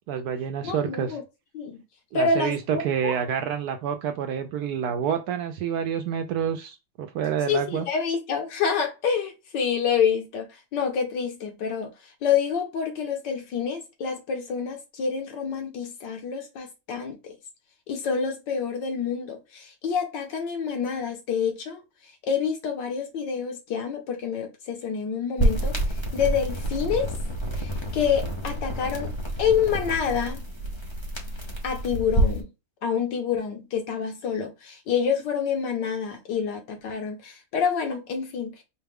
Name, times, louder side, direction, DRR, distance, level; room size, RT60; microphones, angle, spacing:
voice 1, 0.1-1.2 2.1-7.9, right 8 dB, 70° right, 1.0 m, -28 dB
voice 2, 0.6-1.2 1.5-1.8 2.1-3.1 7.5-11.9 12.2-17.4 17.9-21.8 22.2-27.1 27.6-29.1 29.4-30.4 31.6-32.5 32.8-38.6, left 6 dB, 75° left, 1.7 m, -27 dB
sound 1, 25.4-32.4, right 1 dB, 40° left, 0.3 m, -28 dB
4.7 x 2.3 x 3.4 m
omnidirectional pair, 1.9 m